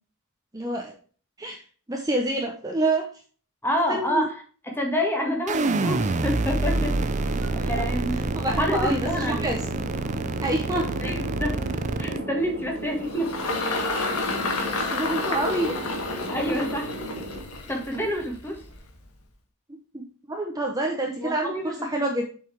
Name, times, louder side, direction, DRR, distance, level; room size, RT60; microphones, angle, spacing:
voice 1, 0.5-0.9 1.4-1.6 1.9-3.1 3.9-4.3 7.4-7.8 8.3-9.6 10.4-10.9 14.2-14.3 14.7-15.8 19.9-22.3, right 1 dB, 15° right, 1 dB, 0.9 m, -27 dB
voice 2, 3.6-8.2 8.6-9.5 11.0-11.6 12.0-13.4 16.3-16.9 17.7-18.6 21.2-22.2, equal, 10° left, 1 dB, 1.8 m, -28 dB
sound 1, 5.5-12.2, right 2 dB, 35° right, 0.5 m, -27 dB
sound 2, 6.6-17.4, right 2 dB, 80° right, 1.9 m, -36 dB
Engine, 12.4-19.0, left 3 dB, 90° left, 1.8 m, -30 dB
7.5 x 5.5 x 3.4 m, 0.40 s
head